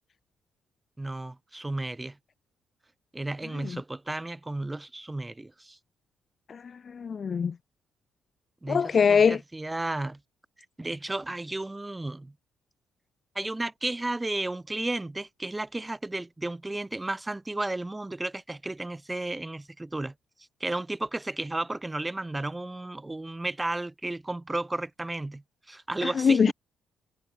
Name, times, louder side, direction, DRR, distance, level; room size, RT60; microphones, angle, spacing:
voice 1, 1.0-2.2 3.1-5.8 8.6-10.2 10.8-12.3 13.3-20.1 20.6-25.4 25.7-26.5, right 2 dB, 15° right, 1.2 m, -33 dB
voice 2, 6.5-7.5 8.7-9.4 26.0-26.5, left 6 dB, 45° left, 0.3 m, -23 dB
cardioid pair, 90°, 0 cm